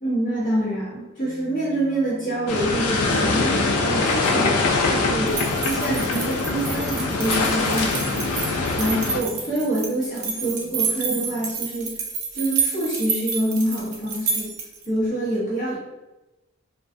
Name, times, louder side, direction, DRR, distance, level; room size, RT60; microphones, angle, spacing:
voice 1, 0.0-8.5 8.8-12.0 12.3-14.5 14.9-15.8, right 1 dB, 40° left, -8 dB, 0.9 m, -26 dB
sound 1, 1.2-11.5, equal, 10° right, 0.7 m, -43 dB
sound 2, 2.5-9.2, left 3 dB, 80° left, 0.3 m, -23 dB
sound 3, 5.3-14.8, right 5 dB, 75° right, 0.5 m, -29 dB
2.3 x 2.2 x 2.5 m, 1.0 s
head